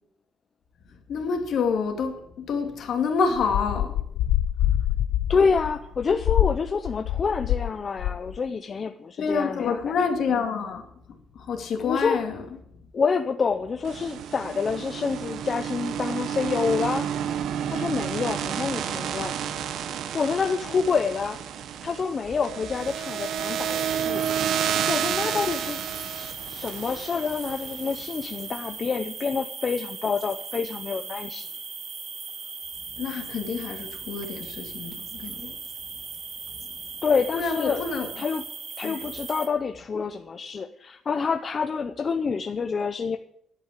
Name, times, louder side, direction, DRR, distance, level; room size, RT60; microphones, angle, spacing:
voice 1, 1.1-4.0 9.2-12.4 32.9-35.6 37.3-38.1 38.8-39.1, left 5 dB, 55° left, 2.3 m, -28 dB
sound 1, 3.4-7.7 8.0-8.4, left 12 dB, 85° left, 0.5 m, -25 dB
voice 2, 5.3-9.9 11.8-12.2 12.9-17.1 17.7-19.4 20.1-21.4 21.8-24.2 24.9-25.8 26.1-31.5 37.0-37.8 38.2-38.4 38.8-43.2, left 5 dB, 30° left, 0.6 m, -27 dB
sound 2, 13.8-28.0, right 9 dB, 65° right, 1.0 m, -30 dB
sound 3, 22.9-39.5, right 5 dB, 35° right, 2.0 m, -38 dB
11.0 x 8.8 x 8.3 m
cardioid pair, 170°, 0 cm